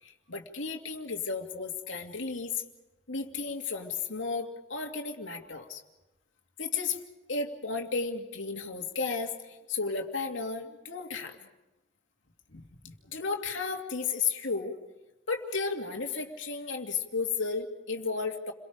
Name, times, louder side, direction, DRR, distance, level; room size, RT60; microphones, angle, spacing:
voice 1, 0.0-2.6 3.1-5.8 6.6-7.0 7.3-11.5 12.5-14.7 15.3-18.5, left 4 dB, 85° left, 4 dB, 2.6 m, -33 dB
29.5 x 23.0 x 5.2 m, 0.98 s
head